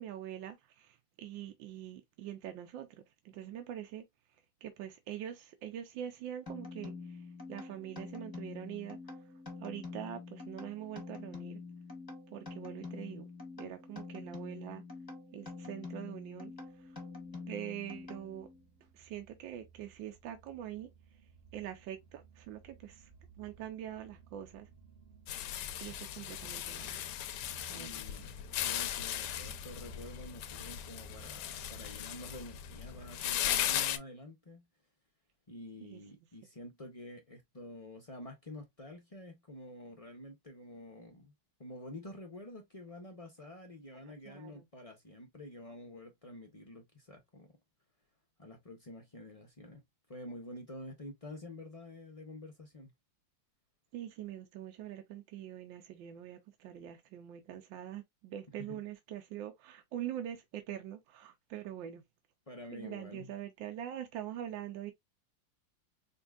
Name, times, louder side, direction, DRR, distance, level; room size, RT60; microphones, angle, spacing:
voice 1, 0.0-4.0 4.6-9.2 9.6-11.6 12.3-13.3 13.6-14.8 15.3-17.0 17.5-18.5 18.9-20.9 21.5-23.1 23.4-24.7 25.8-27.0 27.7-27.9 35.8-36.0 44.0-44.7 53.9-62.0 62.7-64.9, right 11 dB, 75° right, 1.4 m, -44 dB
sound 1, 6.5-18.6, left 4 dB, 15° left, 0.8 m, -46 dB
sound 2, 16.4-33.8, right 6 dB, 30° right, 1.0 m, -57 dB
sound 3, 25.3-34.0, left 12 dB, 75° left, 1.1 m, -37 dB
voice 2, 27.6-34.6 35.5-41.3 41.6-47.5 48.4-49.8 50.1-52.9 58.6-58.8 62.5-63.3, left 1 dB, 50° left, 0.4 m, -48 dB
5.2 x 2.6 x 2.3 m
omnidirectional pair, 2.1 m